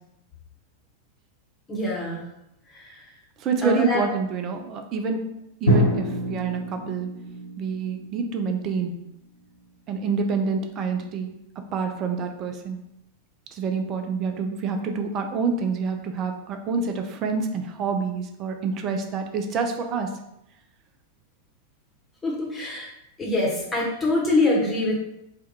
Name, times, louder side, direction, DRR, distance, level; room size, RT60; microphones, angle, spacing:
voice 1, 1.7-2.2 2.7-3.0 3.6-4.0 22.2-22.9 23.2-25.0, left 2 dB, 15° left, -3 dB, 0.9 m, -24 dB
voice 2, 3.4-5.2 5.6-7.1 7.6-8.9 9.9-11.4 11.7-12.8 13.5-20.2, right 5 dB, 35° right, 5 dB, 0.4 m, -27 dB
Drum, 5.7-9.7, equal, 75° left, 0.9 m, -27 dB
3.4 x 2.2 x 2.7 m, 0.82 s
figure-of-eight pair, 90°, 0 cm